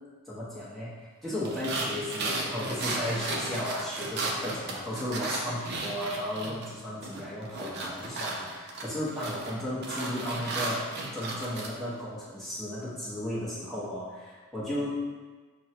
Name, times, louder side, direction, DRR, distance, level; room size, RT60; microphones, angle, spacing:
voice 1, 0.3-10.8 11.1-14.9, left 1 dB, ahead, -10 dB, 1.1 m, -34 dB
sound 1, 1.4-6.7 7.0-11.7, right 2 dB, 50° right, 0.6 m, -34 dB
6.4 x 2.2 x 2.8 m, 1.4 s
head